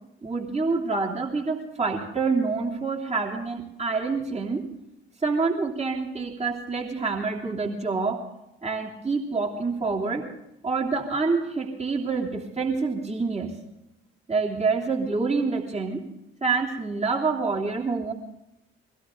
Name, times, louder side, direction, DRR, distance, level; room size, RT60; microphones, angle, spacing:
voice 1, 0.2-4.7 5.2-8.2 8.6-10.2 10.6-13.6 14.3-16.0 16.4-18.1, right 4 dB, 20° right, -1 dB, 3.0 m, -27 dB
23.0 x 16.0 x 3.8 m, 0.85 s
figure-of-eight pair, 40°, 32 cm